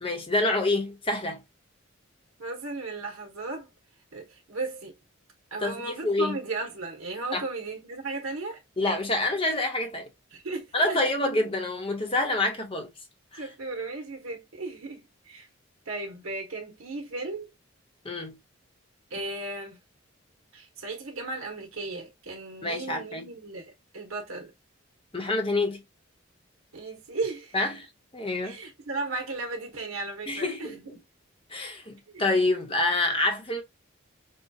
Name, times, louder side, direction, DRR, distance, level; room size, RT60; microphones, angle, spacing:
voice 1, 0.0-1.4 5.6-6.4 7.3-7.4 8.8-10.1 10.7-12.9 13.3-13.4 18.0-18.4 22.6-23.3 25.1-25.8 27.5-27.9 28.1-28.6 30.3-31.0 31.5-33.6, left 2 dB, 25° left, 1.0 m, -27 dB
voice 2, 2.4-3.7 4.1-4.9 5.5-8.6 10.3-11.0 13.4-15.5 15.9-17.5 19.1-19.8 20.5-24.5 26.7-27.6 28.4-31.0 32.1-32.3, right 3 dB, 85° right, 1.1 m, -35 dB
5.6 x 2.3 x 2.7 m
head